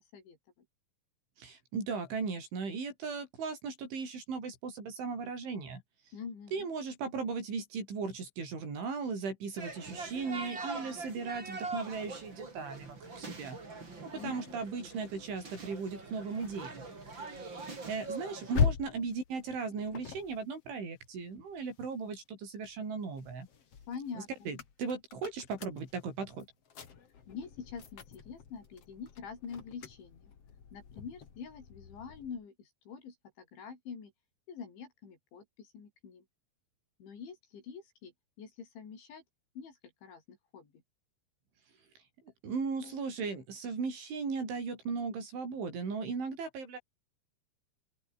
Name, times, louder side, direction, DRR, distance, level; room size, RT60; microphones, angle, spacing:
voice 1, 1.4-5.8 6.5-13.6 14.0-16.9 17.3-23.5 24.2-26.5 42.4-46.8, right 5 dB, 85° right, 10.5 m, -37 dB
voice 2, 6.1-6.7 10.3-10.6 10.9-11.1 14.1-14.6 18.9-19.0 23.9-24.3 27.3-30.3 30.7-34.1 34.5-36.2 37.0-38.1 38.4-39.2 39.6-40.7 42.8-43.0, left 6 dB, 75° left, 7.5 m, -46 dB
sound 1, 9.6-18.6, right 3 dB, 25° right, 5.1 m, -43 dB
sound 2, 15.7-22.2 22.6-32.4, left 7 dB, 40° left, 2.7 m, -40 dB
open air
omnidirectional pair, 5.3 m